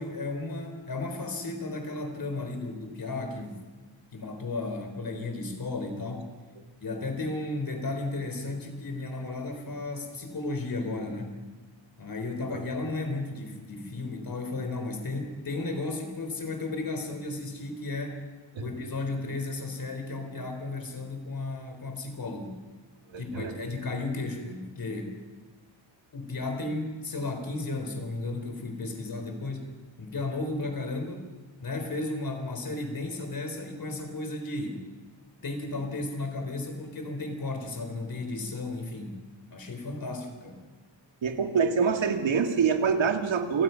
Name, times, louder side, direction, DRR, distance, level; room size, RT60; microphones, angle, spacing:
voice 1, 0.0-3.7 4.1-6.3 6.8-11.4 12.0-18.2 18.6-22.5 23.2-25.2 26.1-29.7 30.0-31.2 31.6-34.9 35.4-39.2 39.5-40.7, left 2 dB, 50° left, 5 dB, 4.0 m, -34 dB
voice 2, 23.1-23.6 41.2-43.6, right 6 dB, 80° right, 5 dB, 2.3 m, -26 dB
28.5 x 19.0 x 5.8 m, 1.3 s
wide cardioid pair, 165°, 46 cm